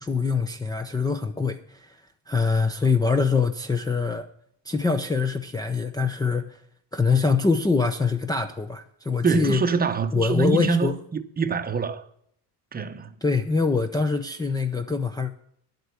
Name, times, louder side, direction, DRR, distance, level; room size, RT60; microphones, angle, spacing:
voice 1, 0.0-2.0 2.3-4.3 4.7-6.6 6.9-9.6 10.1-10.9 13.2-15.3, left 4 dB, 10° left, 0.5 m, -24 dB
voice 2, 9.2-12.1 12.7-13.1, right 5 dB, 20° right, 0.8 m, -25 dB
10.5 x 7.9 x 6.9 m
cardioid pair, 140°, 41 cm